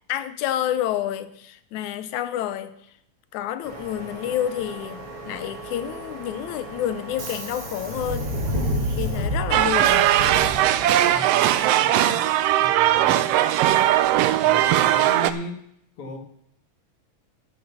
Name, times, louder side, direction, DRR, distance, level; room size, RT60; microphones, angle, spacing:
voice 1, 0.1-2.7 3.3-8.3 9.0-10.1, left 11 dB, 85° left, 12 dB, 2.1 m, -29 dB
Subway metro underground, 3.6-11.1, equal, 50° right, 3.1 m, -31 dB
sound 1, 9.5-15.3, right 12 dB, 80° right, 1.4 m, -19 dB
voice 2, 11.1-12.2 12.6-13.3 13.8-13.9 14.4-15.6 16.0-16.2, left 1 dB, 55° left, 4 dB, 2.4 m, -37 dB
12.5 x 6.7 x 6.9 m, 0.71 s
omnidirectional pair, 3.4 m